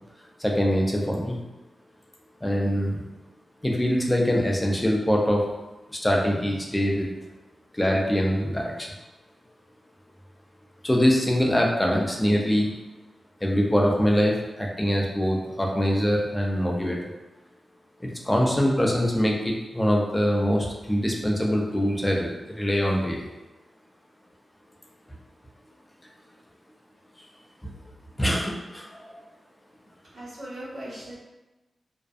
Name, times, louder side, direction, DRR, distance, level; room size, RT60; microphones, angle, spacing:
voice 1, 0.4-1.4 2.4-3.0 3.6-5.4 5.9-7.1 7.7-8.9 10.8-12.7 13.4-17.1 18.2-23.3 27.6-27.7 28.2-29.2, equal, 15° left, -1 dB, 0.5 m, -23 dB
voice 2, 30.1-31.2, right 1 dB, 70° right, -9 dB, 1.2 m, -38 dB
2.6 x 2.1 x 2.4 m, 1.1 s
cardioid pair, 75°, 0 cm